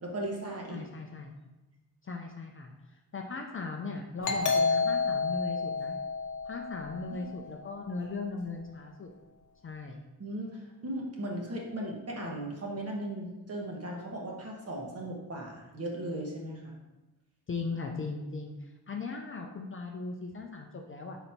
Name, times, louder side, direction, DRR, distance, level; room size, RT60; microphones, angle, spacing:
voice 1, 0.0-0.8 7.1-7.3 10.2-16.7, right 1 dB, 40° right, -2 dB, 1.3 m, -37 dB
voice 2, 0.7-1.3 2.0-2.7 3.1-6.0 6.5-9.1 9.6-10.0 17.5-21.2, left 4 dB, 35° left, 1 dB, 0.5 m, -38 dB
Doorbell, 4.2-7.6, left 4 dB, 50° left, 0.8 m, -30 dB
6.1 x 4.0 x 4.3 m, 1.1 s
wide cardioid pair, 165°, 38 cm